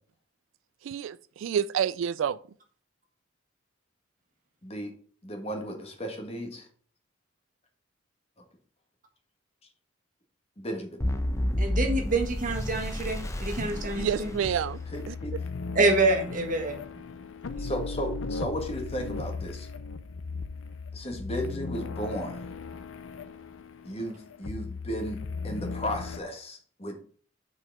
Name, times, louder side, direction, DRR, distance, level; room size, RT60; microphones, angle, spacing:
voice 1, 0.8-2.4 13.9-14.8 15.1-15.2, right 8 dB, 75° right, 0.3 m, -28 dB
voice 2, 5.2-6.6 10.6-11.0 14.9-15.3 17.6-19.7 20.9-22.4 23.8-27.0, equal, 30° left, 1.6 m, -35 dB
sound 1, 11.0-15.1, left 1 dB, 15° left, 0.6 m, -31 dB
voice 3, 11.6-14.3 15.7-16.8, right 2 dB, 40° right, 1.6 m, -26 dB
sound 2, 13.7-26.2, left 4 dB, 90° left, 0.6 m, -37 dB
5.9 x 4.8 x 6.0 m
head